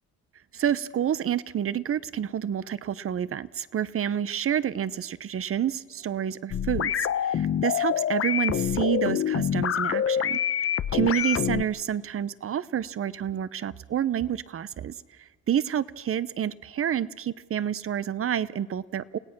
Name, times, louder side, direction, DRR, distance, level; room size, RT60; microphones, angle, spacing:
voice 1, 0.5-10.4 10.9-14.9 15.5-19.2, right 9 dB, 45° right, 17 dB, 0.8 m, -29 dB
sound 1, 6.5-11.6, left 9 dB, 50° left, 0.8 m, -26 dB
29.5 x 17.5 x 6.1 m, 1.3 s
cardioid pair, 90°, 30 cm